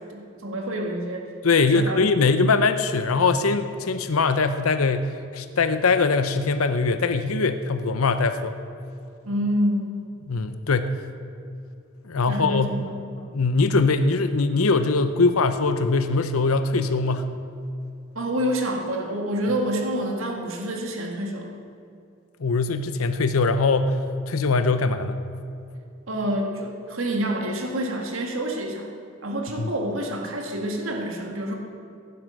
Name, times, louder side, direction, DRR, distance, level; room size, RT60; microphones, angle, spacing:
voice 1, 0.1-1.2 1.7-2.0 2.4-2.5 9.2-9.9 12.3-12.8 13.2-13.3 18.2-21.5 26.1-28.9 29.2-31.5, equal, 70° right, 1 dB, 1.9 m, -27 dB
voice 2, 1.4-8.6 10.3-11.0 12.0-12.7 13.3-17.3 22.4-24.0 24.3-25.3 29.6-29.7, left 4 dB, 85° left, 10 dB, 0.7 m, -22 dB
15.5 x 11.5 x 6.4 m, 2.5 s
head